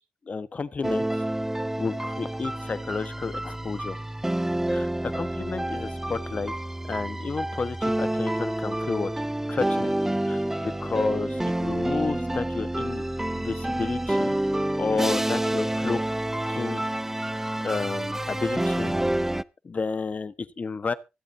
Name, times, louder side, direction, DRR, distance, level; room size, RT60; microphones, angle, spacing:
voice 1, 0.3-1.2 1.8-4.0 4.7-6.5 6.9-9.1 9.5-9.9 10.3-13.0 13.3-14.3 14.8-16.2 16.5-16.8 17.6-19.0 19.6-20.9, left 4 dB, 40° left, 1.2 m, -31 dB
sound 1, 0.8-19.4, right 1 dB, 10° right, 0.6 m, -28 dB
24.5 x 8.4 x 2.7 m
supercardioid pair, 55°, 4 cm